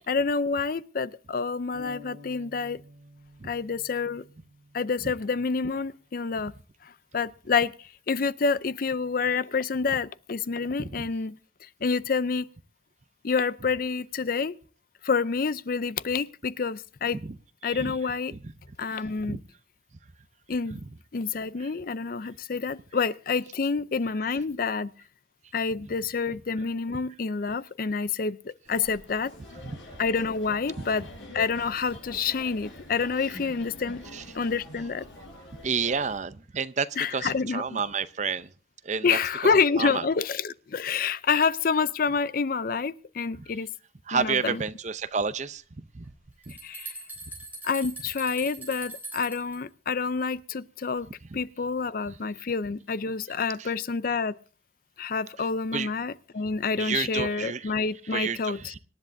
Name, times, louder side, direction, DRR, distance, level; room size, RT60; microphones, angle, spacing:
voice 1, 0.1-2.8 3.4-4.2 4.7-6.5 6.8-12.5 13.2-14.6 15.0-17.2 17.6-18.3 18.8-19.4 20.5-20.8 21.1-24.9 25.5-29.3 30.0-31.1 31.3-34.0 34.3-35.1 37.0-37.8 39.0-43.7 44.1-44.6 46.6-46.9 47.6-51.1 51.3-54.3 55.0-58.7, left 5 dB, 50° left, 0.5 m, -28 dB
sound 1, 1.7-5.5, left 3 dB, 80° right, 4.1 m, -50 dB
voice 2, 17.6-17.9 18.3-18.4 19.2-19.4 20.7-20.8 29.6-29.8 30.8-30.9 34.1-34.2 35.6-38.5 38.8-39.2 39.8-40.0 44.1-45.6 45.9-46.1 46.5-46.6 51.3-51.4 53.6-53.7 55.7-55.9 56.8-57.7 58.1-58.8, right 5 dB, 40° right, 0.6 m, -30 dB
sound 2, 28.7-36.2, left 1 dB, 85° left, 7.0 m, -46 dB
sound 3, 46.0-49.6, right 2 dB, 10° right, 3.6 m, -41 dB
25.5 x 10.5 x 2.6 m
head